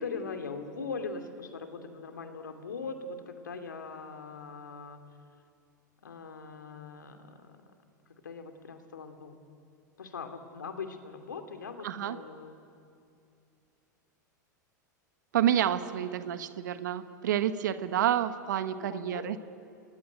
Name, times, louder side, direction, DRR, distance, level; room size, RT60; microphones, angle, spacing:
voice 1, 0.0-5.0 6.0-7.6 8.1-9.4 10.0-12.6 16.0-16.1 18.8-19.3, left 4 dB, 85° left, 6 dB, 2.8 m, -41 dB
voice 2, 11.8-12.2 15.3-19.4, right 10 dB, 70° right, 11 dB, 1.3 m, -29 dB
30.0 x 21.0 x 9.3 m, 2.5 s
hypercardioid pair, 95°, 10 cm